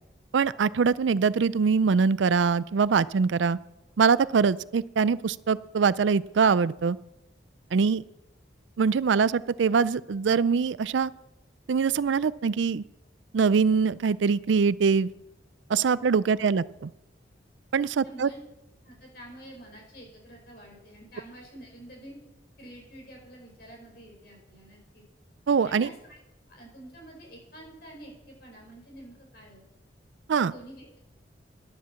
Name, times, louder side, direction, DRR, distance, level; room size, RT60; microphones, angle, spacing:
voice 1, 0.3-3.6 4.0-7.0 7.7-8.0 8.8-11.1 11.7-12.8 13.3-15.1 15.7-16.6 17.7-18.3 25.5-25.9 30.3-30.5, right 5 dB, 90° right, 19 dB, 0.4 m, -23 dB
voice 2, 16.3-16.7 18.0-18.4 18.8-22.2 22.6-25.0 25.6-26.2 26.5-29.7 30.4-31.0, right 1 dB, 55° left, 0 dB, 5.5 m, -48 dB
12.0 x 10.5 x 7.2 m, 0.93 s
head